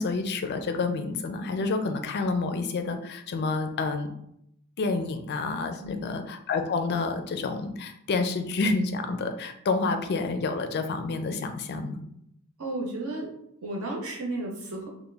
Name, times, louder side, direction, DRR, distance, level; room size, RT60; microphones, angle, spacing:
voice 1, 0.0-4.1 4.8-12.0, left 3 dB, 50° left, 7 dB, 0.4 m, -29 dB
voice 2, 12.6-13.3 13.6-14.9, right 2 dB, 75° right, -2 dB, 0.9 m, -33 dB
3.1 x 2.1 x 3.4 m, 0.75 s
head